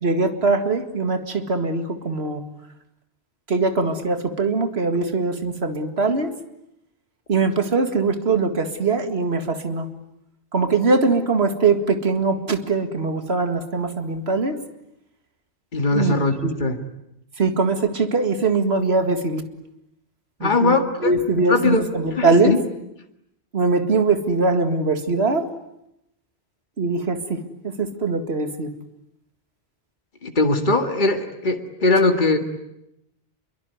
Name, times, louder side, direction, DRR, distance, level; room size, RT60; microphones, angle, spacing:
voice 1, 0.0-2.4 3.5-6.3 7.3-9.9 10.5-14.6 15.9-16.2 16.4-16.6 17.4-19.4 20.4-22.6 23.5-25.5 26.8-28.7, right 3 dB, 75° right, 8 dB, 2.3 m, -22 dB
voice 2, 15.7-16.3 16.6-16.8 20.4-21.1 21.5-21.9 22.1-22.6 30.2-32.4, left 2 dB, 50° left, 5 dB, 2.1 m, -20 dB
26.5 x 23.0 x 9.5 m, 0.83 s
omnidirectional pair, 1.1 m